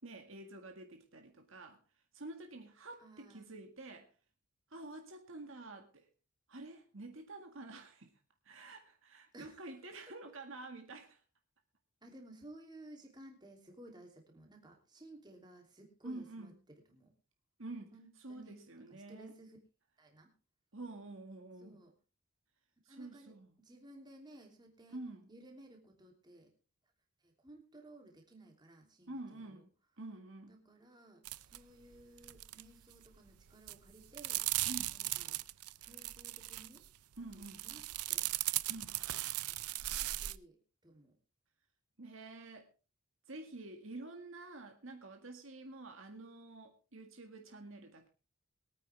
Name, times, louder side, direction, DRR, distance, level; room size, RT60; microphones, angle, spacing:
voice 1, 0.0-1.8 2.1-4.1 4.7-6.1 6.5-8.1 8.5-11.2 16.0-16.5 17.6-17.9 18.2-19.3 20.7-21.8 22.9-23.5 24.9-25.3 29.1-29.7 30.0-30.6 34.7-34.9 37.2-37.7 38.7-39.0 42.0-42.7 43.3-48.1, right 2 dB, 60° right, 4 dB, 1.9 m, -48 dB
voice 2, 3.0-3.5 9.3-9.7 12.0-17.1 17.9-19.6 20.0-20.3 21.6-21.9 22.9-25.0 25.3-26.5 27.2-29.6 30.5-35.4 35.8-36.9 37.2-38.3 39.5-41.1, right 1 dB, 20° right, 2 dB, 3.0 m, -57 dB
sound 1, 31.3-31.6 31.8-32.6 32.9-33.3 33.7-36.9 37.3-40.4, right 17 dB, 85° right, 0.6 m, -38 dB
23.0 x 9.2 x 3.4 m, 0.33 s
head